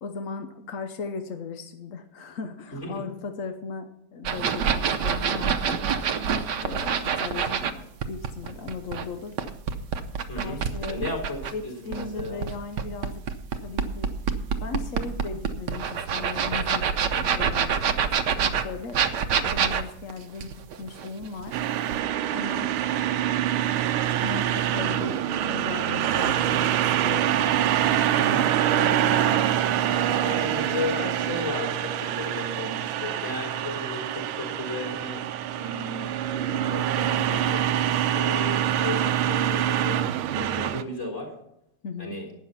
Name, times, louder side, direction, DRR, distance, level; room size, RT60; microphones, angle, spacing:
voice 1, 0.0-5.9 6.6-9.5 10.3-11.0 11.5-13.2 13.6-14.1 14.6-19.0 19.4-21.6 22.3-22.7 24.2-26.8 27.0-27.4 28.7-29.4 41.8-42.1, left 5 dB, 60° left, 6 dB, 0.9 m, -37 dB
voice 2, 2.7-3.0 10.3-10.6 10.9-12.4 24.8-24.9 28.2-28.5 29.3-29.4 30.2-35.3 35.5-41.3 42.0-42.3, left 2 dB, 30° left, 1 dB, 4.4 m, -35 dB
sound 1, 4.2-7.7 8.0-11.5 11.9-21.6 21.9-22.0, right 7 dB, 65° right, 1.3 m, -26 dB
sound 2, 21.5-40.8, right 11 dB, 80° right, 1.6 m, -25 dB
12.0 x 8.9 x 5.7 m, 0.80 s
omnidirectional pair, 2.4 m